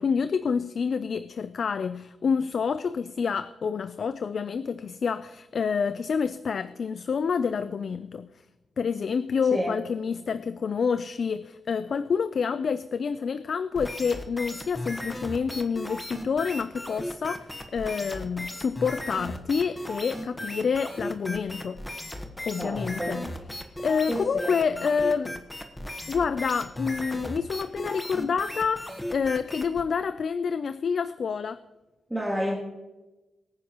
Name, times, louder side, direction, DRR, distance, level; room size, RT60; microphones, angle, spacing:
voice 1, 0.0-8.3 8.8-21.8 22.5-25.4 26.1-31.6, left 6 dB, 55° left, 13 dB, 0.4 m, -28 dB
sound 1, 13.7-29.8, left 1 dB, 10° left, 1.2 m, -36 dB
voice 2, 22.6-23.2 24.1-24.5 32.1-32.6, equal, 5° right, -4 dB, 2.0 m, -30 dB
23.0 x 9.9 x 3.0 m, 1.1 s
wide cardioid pair, 130°, 0 cm